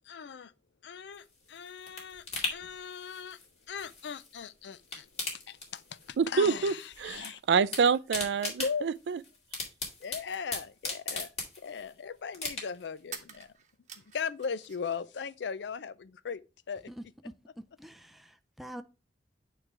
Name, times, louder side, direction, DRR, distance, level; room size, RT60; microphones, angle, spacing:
voice 1, 0.1-0.5 0.8-3.4 3.7-5.1 5.3-7.4 8.6-8.9 10.0-13.5 14.1-16.4 16.7-16.9, left 6 dB, 75° left, 0.5 m, -38 dB
sound 1, 1.1-4.4 4.7-6.2 6.5-7.3 7.6-11.9 12.3-13.0 13.4-13.5, left 3 dB, 40° left, 2.3 m, -38 dB
voice 2, 6.2-6.7 7.0-9.2, right 5 dB, 75° right, 0.4 m, -27 dB
sound 2, 10.8-10.9 13.0-15.0 15.3-16.1, right 7 dB, 45° right, 1.0 m, -48 dB
voice 3, 16.9-17.3 17.8-18.8, right 1 dB, ahead, 0.4 m, -45 dB
8.8 x 3.2 x 4.6 m
head